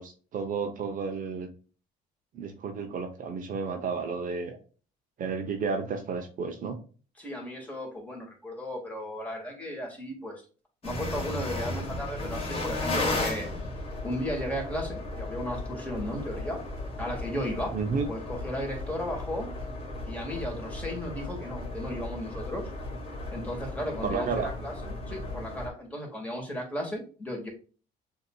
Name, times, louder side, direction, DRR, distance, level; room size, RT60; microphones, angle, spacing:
voice 1, 0.0-1.5 2.3-4.6 5.2-6.8 17.7-18.1 24.0-24.5, right 5 dB, 50° right, 5 dB, 0.8 m, -32 dB
voice 2, 7.2-10.4 10.8-13.5 14.0-16.6 17.0-17.7 18.1-19.5 20.1-22.7 23.3-27.5, left 1 dB, 10° left, -1 dB, 1.9 m, -35 dB
sound 1, 10.8-25.7, left 2 dB, 35° left, 1.7 m, -35 dB
6.7 x 2.9 x 2.3 m, 0.37 s
cardioid pair, 110°, 17 cm